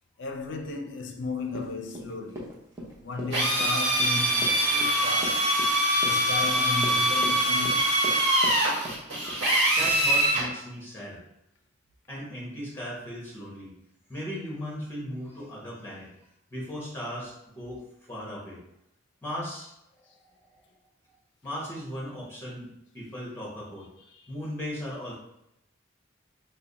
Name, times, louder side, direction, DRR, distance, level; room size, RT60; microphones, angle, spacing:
voice 1, 0.2-2.5 3.0-5.5 6.0-8.0, left 3 dB, 60° left, 0.5 m, -35 dB
Run, 1.5-8.6 8.8-9.5 9.8-10.0 10.4-10.5, equal, 15° right, 0.8 m, -40 dB
Drill, 3.3-10.5, right 1 dB, 55° right, 1.2 m, -24 dB
voice 2, 9.7-11.2 12.1-13.7 14.1-16.1 16.5-17.8 18.1-18.6 19.2-19.7 20.4-20.5 21.4-23.9 24.3-25.1, equal, 10° left, 1.1 m, -37 dB
3.3 x 2.1 x 3.9 m
head